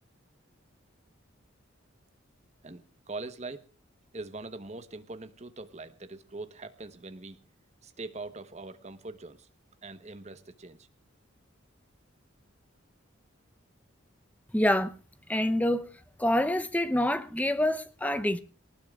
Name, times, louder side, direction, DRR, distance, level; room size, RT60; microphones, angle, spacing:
voice 1, 2.6-3.7 4.1-7.4 7.8-9.5 9.8-10.9, right 3 dB, 35° right, 1.1 m, -42 dB
voice 2, 14.5-14.9 15.3-15.9 16.2-18.4, left 1 dB, 5° left, 0.8 m, -26 dB
22.5 x 19.0 x 2.4 m
head